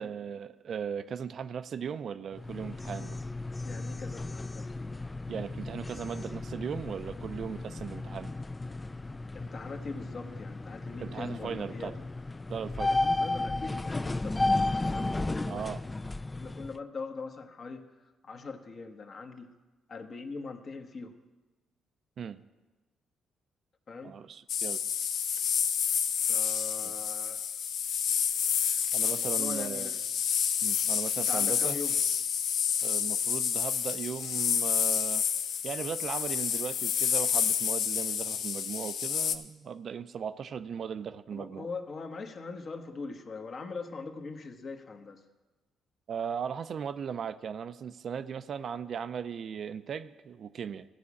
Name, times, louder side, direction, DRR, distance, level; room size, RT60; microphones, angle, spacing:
voice 1, 0.0-3.2 5.3-8.3 11.0-11.9 12.5-13.0 15.5-15.8 22.2-22.4 24.0-24.8 26.8-26.9 28.9-29.9 30.6-31.8 32.8-35.2 35.6-41.7 46.1-50.9, right 7 dB, 55° right, 12 dB, 0.4 m, -37 dB
sound 1, 2.3-16.8, left 2 dB, 15° left, 0.3 m, -34 dB
voice 2, 3.6-5.0 9.3-12.0 12.9-15.7 16.3-19.5 19.9-21.1 23.9-24.1 26.3-27.4 29.0-30.0 31.2-32.0 41.3-45.2, left 4 dB, 45° left, 5 dB, 1.1 m, -42 dB
sound 2, 24.5-39.4, left 8 dB, 75° left, 0.6 m, -29 dB
14.5 x 4.9 x 8.3 m, 1.2 s
cardioid pair, 95°, 0 cm